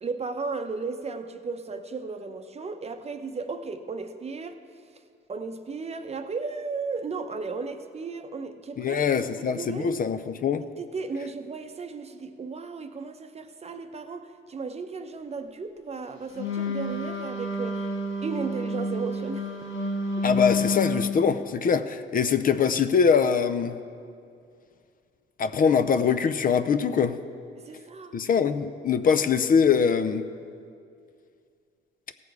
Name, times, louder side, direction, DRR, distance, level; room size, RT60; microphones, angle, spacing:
voice 1, 0.0-4.6 5.3-9.0 9.4-9.9 10.8-17.9 18.2-19.5 20.2-20.3 27.6-28.2, right 4 dB, 30° right, 8 dB, 0.7 m, -35 dB
voice 2, 8.8-10.6 20.2-23.8 25.4-27.2 28.1-30.2, left 6 dB, 45° left, 11 dB, 0.5 m, -23 dB
Wind instrument woodwind instrument, 16.3-21.1, left 1 dB, 75° left, 1.3 m, -29 dB
16.5 x 6.9 x 4.7 m, 2.4 s
cardioid pair, 90°, 20 cm